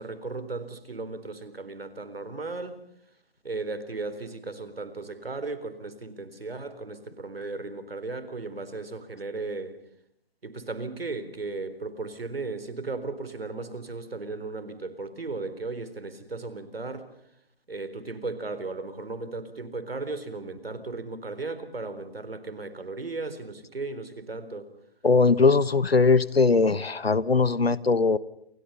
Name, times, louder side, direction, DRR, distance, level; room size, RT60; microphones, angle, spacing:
voice 1, 0.0-2.8 3.4-9.8 10.4-17.1 17.7-24.7, right 3 dB, 70° right, 12 dB, 4.1 m, -36 dB
voice 2, 25.0-28.2, left 4 dB, 80° left, 18 dB, 1.4 m, -20 dB
29.0 x 28.5 x 5.6 m, 0.68 s
figure-of-eight pair, 145°, 30 cm